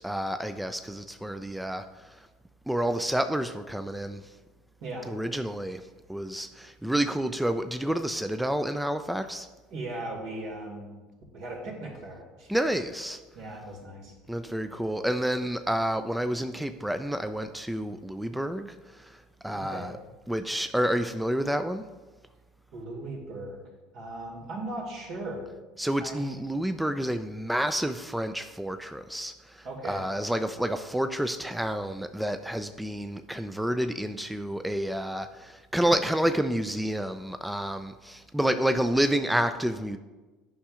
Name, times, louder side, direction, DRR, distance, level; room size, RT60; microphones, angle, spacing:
voice 1, 0.0-2.2 2.7-4.3 5.1-5.8 6.1-9.5 12.5-13.2 14.3-19.2 19.4-19.9 20.3-21.8 25.8-40.0, right 1 dB, 5° right, 9 dB, 0.3 m, -29 dB
voice 2, 9.7-11.0 11.3-12.5 13.3-14.1 19.5-19.9 22.7-23.6 23.9-25.4 26.0-26.4 29.6-30.0, right 2 dB, 65° right, -2 dB, 2.3 m, -38 dB
10.0 x 5.6 x 2.5 m, 1.2 s
hypercardioid pair, 75°, 0 cm